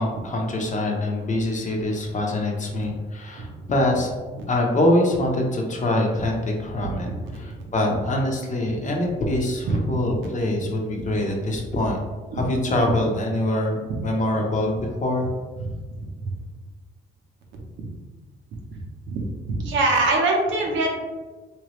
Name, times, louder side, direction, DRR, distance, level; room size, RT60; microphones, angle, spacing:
voice 1, 0.0-4.1 4.5-12.0 12.3-15.2, left 1 dB, 40° left, 0 dB, 0.9 m, -24 dB
voice 2, 6.8-8.0 9.7-10.0 10.9-11.0 12.3-12.4 16.0-16.3 18.7-18.8 19.1-19.2 19.5-21.0, right 2 dB, 75° right, 1 dB, 0.9 m, -25 dB
3.3 x 3.1 x 3.1 m, 1.3 s
cardioid pair, 90°, 20 cm